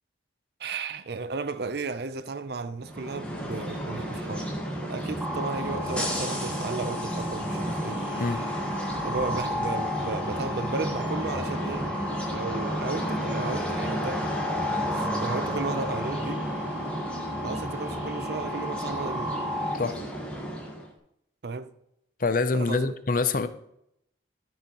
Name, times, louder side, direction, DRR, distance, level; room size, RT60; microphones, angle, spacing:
voice 1, 0.6-4.5 4.8-8.0 9.0-11.9 12.3-14.4 14.9-16.4 17.4-19.4 21.4-21.7 22.5-22.9, right 4 dB, 55° right, 0.5 m, -34 dB
sound 1, 2.8-20.9, equal, 5° left, 1.5 m, -32 dB
sound 2, 5.2-19.8, left 1 dB, 10° right, 0.6 m, -35 dB
voice 2, 22.2-23.5, left 3 dB, 45° left, 0.5 m, -25 dB
13.5 x 6.3 x 3.0 m
head